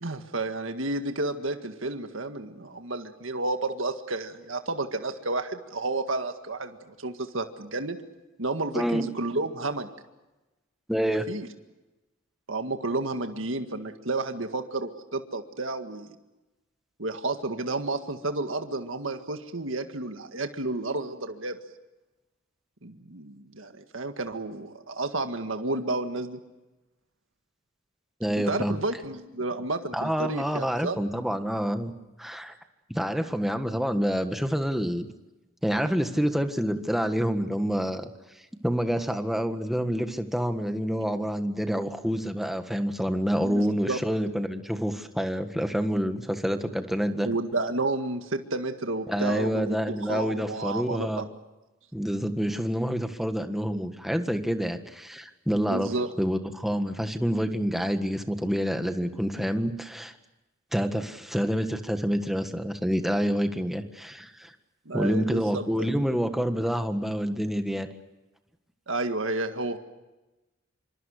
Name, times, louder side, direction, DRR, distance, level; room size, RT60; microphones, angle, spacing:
voice 1, 0.0-8.0 8.4-9.9 11.3-11.5 12.5-16.2 17.0-21.6 22.8-26.4 28.4-31.0 43.4-44.0 47.2-51.3 55.5-56.1 64.9-65.9 68.9-69.8, right 2 dB, 75° right, 7 dB, 1.9 m, -31 dB
voice 2, 10.9-11.2 28.2-28.7 29.9-31.9 32.2-32.5 32.9-35.1 35.6-38.1 38.6-47.3 49.1-51.2 51.9-55.9 56.2-60.1 60.7-64.5 64.9-67.9, equal, ahead, 7 dB, 1.6 m, -27 dB
26.5 x 25.5 x 6.6 m, 1.1 s
head